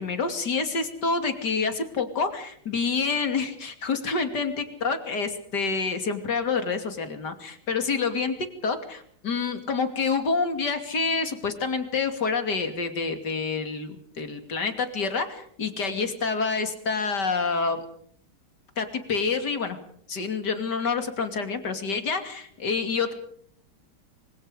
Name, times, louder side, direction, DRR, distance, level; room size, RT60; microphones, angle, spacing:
voice 1, 0.0-17.8 18.8-19.8 20.1-23.1, left 4 dB, 50° left, 7 dB, 3.2 m, -27 dB
26.5 x 25.5 x 5.1 m, 0.63 s
omnidirectional pair, 2.3 m